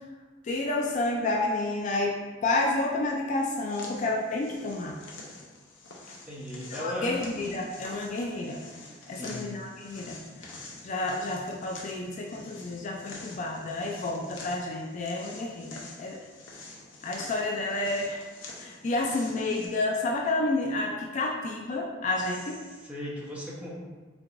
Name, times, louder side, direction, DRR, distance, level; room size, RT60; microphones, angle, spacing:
voice 1, 0.4-2.2 2.4-5.0 6.7-8.6 9.1-16.2 17.0-18.2 18.6-22.6, left 2 dB, 40° left, 0 dB, 0.3 m, -30 dB
sound 1, 3.5-19.7, left 2 dB, 70° left, 0.7 m, -47 dB
voice 2, 6.2-7.1 9.0-9.5 22.7-23.7, left 1 dB, 10° right, -6 dB, 0.8 m, -37 dB
4.6 x 2.9 x 2.5 m, 1.3 s
head